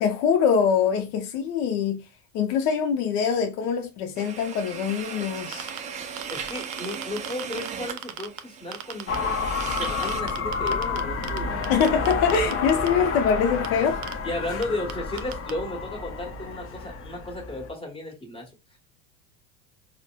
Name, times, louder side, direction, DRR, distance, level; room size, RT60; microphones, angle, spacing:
voice 1, 0.0-2.1 2.3-5.7 11.7-14.0, left 6 dB, 65° left, 0.6 m, -24 dB
sound 1, 4.2-10.2, right 6 dB, 20° right, 0.3 m, -37 dB
sound 2, 5.4-5.8 6.2-8.4 8.7-9.2 9.6-11.4 11.6-12.9 13.6-13.7 14.0-14.1 14.6-14.7 14.9-15.0 15.2-15.5, right 12 dB, 60° right, 0.6 m, -35 dB
voice 2, 6.3-9.2 9.8-11.6 14.2-18.8, left 2 dB, 15° left, 1.3 m, -34 dB
sound 3, 9.1-17.7, left 5 dB, 30° left, 0.6 m, -30 dB
3.9 x 2.1 x 2.2 m
hypercardioid pair, 85°, 44 cm